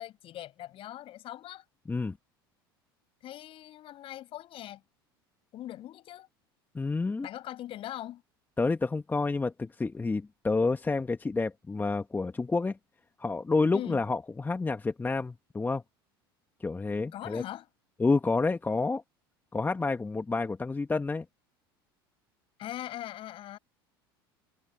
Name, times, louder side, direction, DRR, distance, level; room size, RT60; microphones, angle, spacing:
voice 1, 0.0-1.6 3.2-4.8 5.5-6.3 7.2-8.2 13.7-14.0 17.1-17.7 22.6-23.6, left 13 dB, 45° left, 7.1 m, -41 dB
voice 2, 6.7-7.3 8.6-12.8 13.2-15.8 16.6-17.4 18.0-19.0 19.5-21.3, left 3 dB, 15° left, 1.8 m, -29 dB
hypercardioid pair, 75°, 12 cm